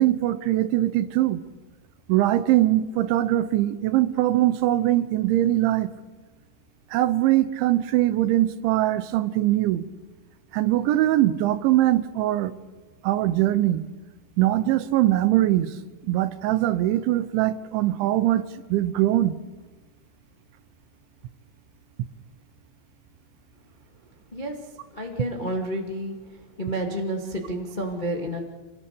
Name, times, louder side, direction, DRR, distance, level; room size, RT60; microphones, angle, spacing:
voice 1, 0.0-1.4 2.1-5.9 6.9-9.9 10.5-12.5 13.0-13.9 14.4-15.8 16.1-19.4, right 14 dB, 80° right, 13 dB, 3.1 m, -22 dB
voice 2, 24.9-26.1 26.6-28.4, right 1 dB, 85° left, 1 dB, 0.4 m, -30 dB
27.5 x 18.5 x 6.8 m, 1.3 s
omnidirectional pair, 5.7 m